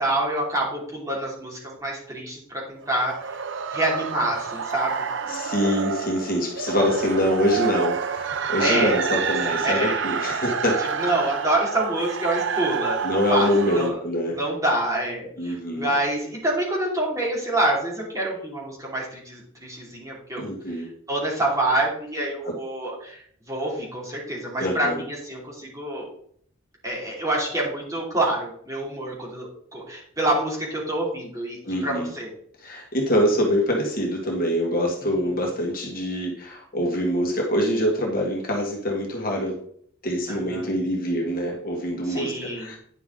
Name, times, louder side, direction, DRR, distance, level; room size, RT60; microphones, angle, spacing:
voice 1, 0.0-3.3 3.7-5.0 8.4-9.0 9.6-10.0 10.8-13.0 13.3-13.5 13.7-14.0 14.3-26.1 26.8-32.3 35.2-35.5 40.3-40.7 42.0-42.7, right 1 dB, 15° right, -5 dB, 2.7 m, -27 dB
sound 1, 2.8-13.9, right 6 dB, 55° right, 0.6 m, -28 dB
voice 2, 5.3-10.8 13.0-14.4 15.4-15.9 20.4-20.9 22.4-22.5 24.6-25.0 31.6-32.1 32.6-39.6 40.0-42.8, equal, 40° left, -1 dB, 1.8 m, -25 dB
9.9 x 5.9 x 3.8 m, 0.62 s
head